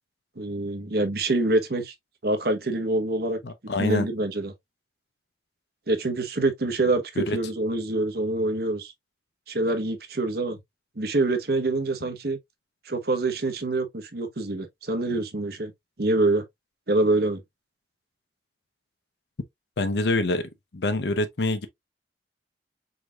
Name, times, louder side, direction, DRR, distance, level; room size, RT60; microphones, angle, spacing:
voice 1, 0.4-1.9 2.2-3.4 3.8-4.5 5.9-8.9 9.5-10.6 11.0-12.4 12.9-15.7 16.0-16.4 16.9-17.4, right 2 dB, 60° right, 1.0 m, -25 dB
voice 2, 3.4-4.1 7.2-7.4 19.8-20.4 20.7-21.7, left 2 dB, 70° left, 0.7 m, -25 dB
4.8 x 4.0 x 2.3 m
head